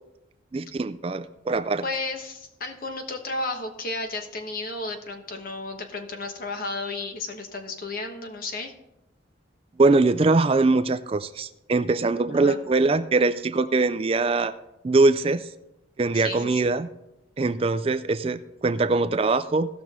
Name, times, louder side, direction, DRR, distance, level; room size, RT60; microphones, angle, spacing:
voice 1, 0.5-1.8 9.8-14.5 14.8-15.5 16.0-16.9 17.4-19.7, right 3 dB, 30° right, 12 dB, 0.3 m, -22 dB
voice 2, 1.8-8.7 12.3-12.6 16.1-16.6, left 3 dB, 45° left, 5 dB, 1.2 m, -33 dB
17.0 x 6.0 x 3.7 m, 0.88 s
head